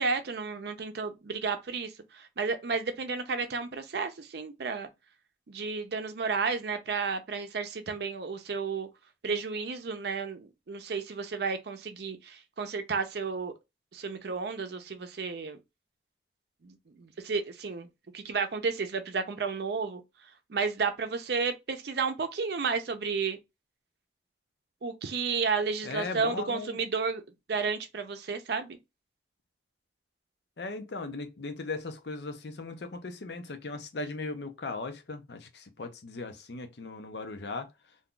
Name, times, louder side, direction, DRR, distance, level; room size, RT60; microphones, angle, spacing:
voice 1, 0.0-4.9 5.5-8.9 9.2-13.5 13.9-15.6 16.6-17.9 18.1-20.0 20.5-23.4 24.8-27.2 27.5-28.8, right 5 dB, 65° right, 0.5 m, -32 dB
voice 2, 25.8-26.8 30.6-37.7, left 3 dB, 75° left, 0.6 m, -38 dB
2.6 x 2.3 x 3.6 m
head